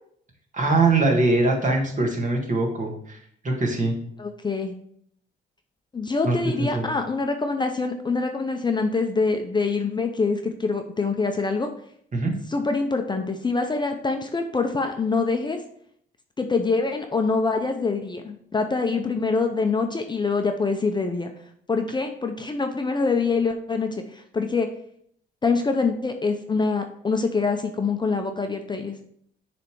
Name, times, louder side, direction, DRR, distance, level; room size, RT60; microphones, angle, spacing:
voice 1, 0.5-3.2 3.4-3.9 6.2-6.9 12.1-12.3, right 2 dB, 40° right, 1 dB, 1.7 m, -22 dB
voice 2, 4.2-4.7 5.9-11.7 12.5-15.6 16.4-21.3 21.7-24.7 25.4-29.0, left 4 dB, 20° left, 5 dB, 0.6 m, -25 dB
6.5 x 3.4 x 4.6 m, 0.65 s
cardioid pair, 90°, 20 cm